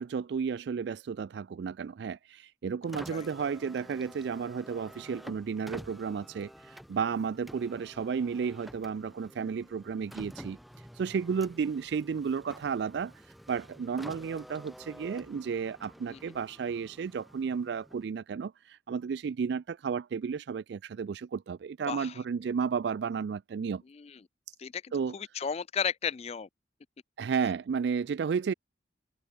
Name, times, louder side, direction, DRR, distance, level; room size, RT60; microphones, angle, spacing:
voice 1, 0.0-10.6 10.9-13.2 13.5-23.8 24.9-25.1 27.2-28.5, right 6 dB, 60° right, 0.3 m, -33 dB
Car, 2.8-18.2, equal, ahead, 5.7 m, -50 dB
voice 2, 21.9-22.2 23.9-24.2 24.6-26.5, left 7 dB, 35° left, 0.3 m, -35 dB
head